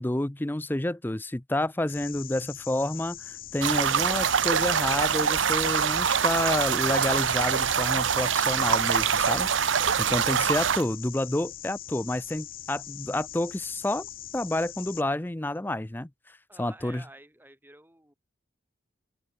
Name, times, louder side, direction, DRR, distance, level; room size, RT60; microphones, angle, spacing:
voice 1, 0.0-14.1 14.3-17.0, left 1 dB, 10° left, 0.5 m, -29 dB
sound 1, 1.9-15.0, left 12 dB, 45° left, 1.5 m, -42 dB
sound 2, 3.6-10.8, right 7 dB, 75° right, 0.8 m, -24 dB
voice 2, 16.5-18.1, right 1 dB, 10° right, 5.9 m, -51 dB
open air
head